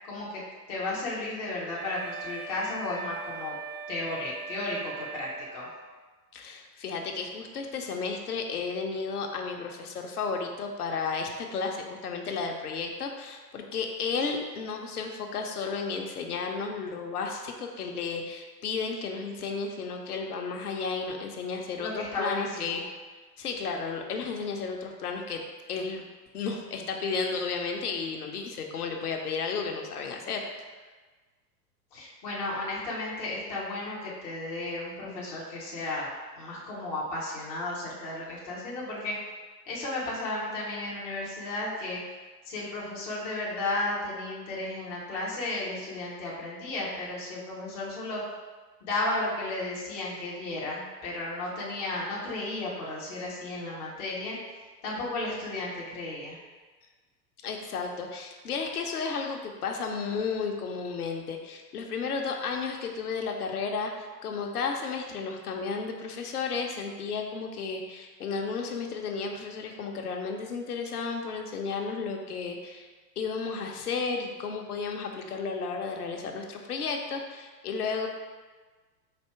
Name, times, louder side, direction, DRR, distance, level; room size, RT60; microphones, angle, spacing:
voice 1, 0.0-0.4 0.7-3.6 3.9-5.7 21.8-22.8 31.9-36.1 36.4-39.2 39.7-42.0 42.4-48.2 48.8-54.4 54.8-56.4, left 2 dB, 15° left, -6 dB, 0.4 m, -34 dB
Wind instrument woodwind instrument, 1.7-5.9, right 5 dB, 40° right, 0.6 m, -40 dB
voice 2, 6.3-22.8 23.4-25.4 25.7-30.4 57.4-72.9 73.2-78.1, left 5 dB, 65° left, 2 dB, 0.8 m, -33 dB
4.3 x 2.7 x 4.5 m, 1.3 s
figure-of-eight pair, 100°, 50 cm